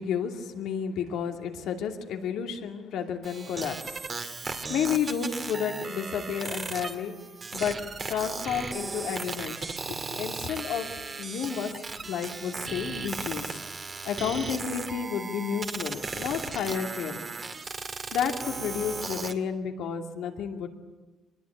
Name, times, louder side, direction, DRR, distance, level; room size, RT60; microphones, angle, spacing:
voice 1, 0.0-3.9 4.7-7.1 7.5-7.8 8.1-11.7 12.1-13.6 14.0-17.2 18.1-20.7, left 7 dB, 85° left, 4 dB, 2.6 m, -31 dB
sound 1, 3.2-19.3, right 4 dB, 40° right, 2.4 m, -36 dB
24.5 x 20.5 x 8.7 m, 1.1 s
cardioid pair, 90°, 0 cm